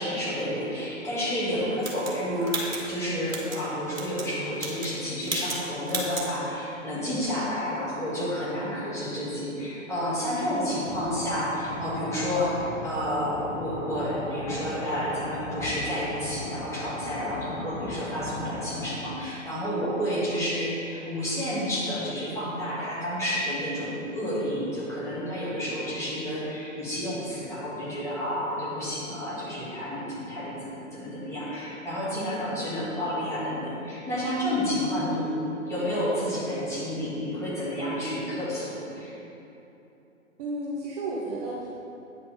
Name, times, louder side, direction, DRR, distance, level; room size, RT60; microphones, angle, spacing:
voice 1, 0.0-35.3 35.7-39.1, equal, 5° left, -9 dB, 2.2 m, -30 dB
sound 1, 1.8-3.6 3.9-4.3 4.6-5.0 5.2-5.6 5.9-6.3, right 2 dB, 75° right, 2.1 m, -33 dB
sound 2, 10.8-18.9, left 1 dB, 25° left, 1.0 m, -37 dB
voice 2, 34.8-35.2 40.4-41.7, right 1 dB, 30° right, -5 dB, 1.1 m, -33 dB
9.3 x 5.8 x 5.3 m, 2.9 s
figure-of-eight pair, 125°, 40 cm